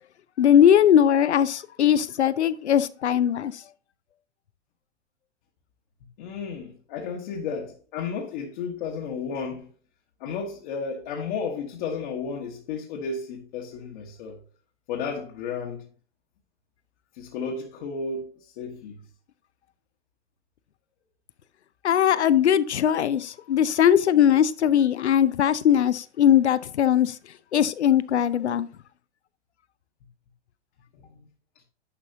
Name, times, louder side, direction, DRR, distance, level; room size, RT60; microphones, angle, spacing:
voice 1, 0.4-3.5 21.8-27.1 27.5-28.7, left 9 dB, 75° left, 0.6 m, -20 dB
voice 2, 6.2-9.7 10.2-14.4 14.9-15.8 17.1-19.0 30.9-31.3, left 5 dB, 45° left, 1.4 m, -33 dB
10.5 x 5.4 x 2.8 m
figure-of-eight pair, 110°, 34 cm